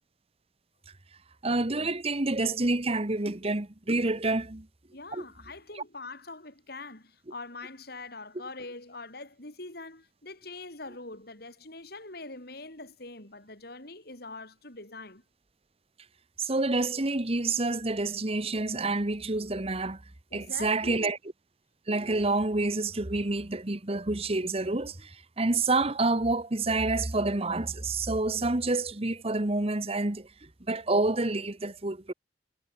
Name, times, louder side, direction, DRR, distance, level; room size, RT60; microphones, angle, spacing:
voice 1, 1.4-4.7 5.1-5.2 16.4-20.0 20.3-21.2 21.9-30.3 30.7-32.1, right 2 dB, 35° right, 1.3 m, -28 dB
voice 2, 4.9-15.2 20.3-21.1, left 3 dB, 60° left, 6.7 m, -43 dB
head